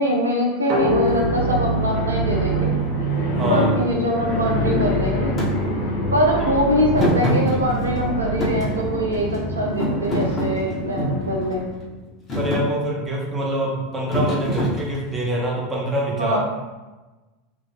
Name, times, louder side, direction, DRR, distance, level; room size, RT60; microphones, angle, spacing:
voice 1, 0.0-2.7 3.3-5.3 6.1-11.7 16.2-16.4, equal, 85° right, -1 dB, 0.5 m, -23 dB
sound 1, 0.7-4.2, left 1 dB, 55° right, 0.9 m, -27 dB
sound 2, 0.8-11.7, right 1 dB, 65° left, 0.8 m, -25 dB
voice 2, 3.3-3.7 12.3-16.4, right 1 dB, 20° right, -3 dB, 1.1 m, -25 dB
Thump thud, 5.4-5.5 7.0-8.0 8.4-9.4 9.8-11.2 11.8-12.0 12.3-12.7 14.1-15.2, equal, 30° left, 1.2 m, -24 dB
3.0 x 2.6 x 3.5 m, 1.2 s
figure-of-eight pair, 80°, 0 cm